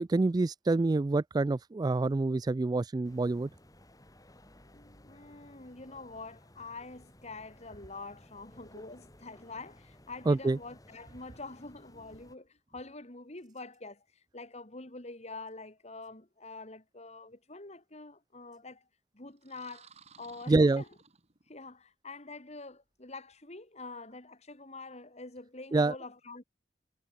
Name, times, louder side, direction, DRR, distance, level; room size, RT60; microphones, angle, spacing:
voice 1, 0.0-3.5 10.3-10.6 20.5-20.8 25.7-25.9, right 3 dB, 20° right, 0.3 m, -26 dB
sound 1, 3.0-12.3, left 1 dB, 20° left, 4.7 m, -58 dB
voice 2, 4.6-18.9 19.1-19.9 20.2-20.9 21.5-26.4, left 3 dB, 40° left, 2.8 m, -46 dB
sound 2, 19.4-21.7, right 6 dB, 40° right, 3.2 m, -58 dB
head